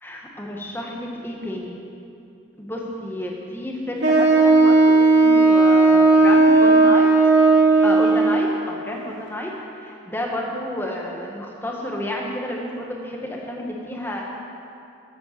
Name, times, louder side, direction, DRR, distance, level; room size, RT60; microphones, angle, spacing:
voice 1, 0.0-1.8 2.6-7.1 7.8-9.5 9.8-14.2, left 1 dB, 10° left, -1 dB, 1.6 m, -31 dB
Wind instrument woodwind instrument, 4.0-8.4, right 3 dB, 65° right, 2.5 m, -15 dB
13.5 x 8.6 x 6.8 m, 2.6 s
head